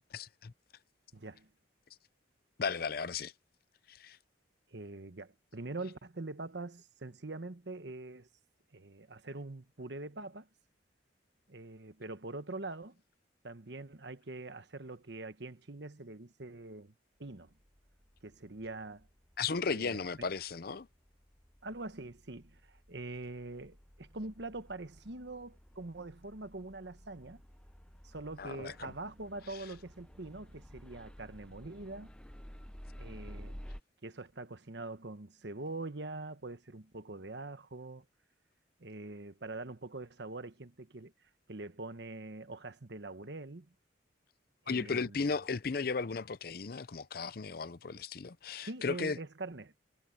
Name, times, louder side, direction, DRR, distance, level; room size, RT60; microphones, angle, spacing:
voice 1, 0.1-0.5 2.6-3.3 3.9-4.2 19.4-20.9 28.4-28.9 44.7-49.2, left 4 dB, 50° left, 0.6 m, -35 dB
voice 2, 1.1-1.5 4.7-8.3 8.7-10.5 11.5-13.0 13.4-16.9 17.2-17.5 18.2-19.1 19.7-20.3 21.6-27.4 28.0-32.1 33.0-33.6 34.0-38.0 38.8-41.1 41.5-43.7 44.6-45.2 48.6-49.7, right 2 dB, 65° right, 1.2 m, -44 dB
sound 1, 17.3-33.8, equal, 5° left, 0.7 m, -54 dB
head